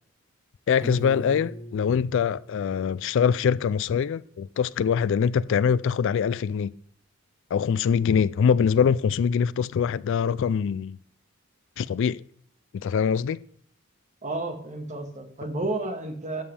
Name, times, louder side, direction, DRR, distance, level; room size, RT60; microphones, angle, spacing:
voice 1, 0.7-6.8 7.5-11.0 11.8-12.2 12.7-13.4, left 7 dB, 65° left, 0.3 m, -23 dB
Piano, 0.8-3.7, equal, 15° right, 3.6 m, -40 dB
voice 2, 14.2-16.4, right 2 dB, 35° right, 1.6 m, -31 dB
12.5 x 7.4 x 3.3 m
head